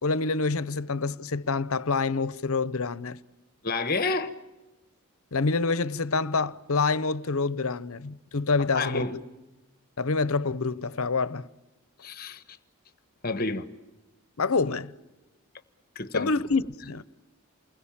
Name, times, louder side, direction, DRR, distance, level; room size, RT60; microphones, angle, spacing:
voice 1, 0.0-3.2 5.3-9.2 10.0-11.5 14.4-14.9 16.1-17.0, left 4 dB, 70° left, 0.8 m, -27 dB
voice 2, 3.6-4.3 8.7-9.1 12.0-12.4 13.2-13.7 15.9-16.3, left 3 dB, 40° left, 1.2 m, -29 dB
29.0 x 21.5 x 8.8 m
head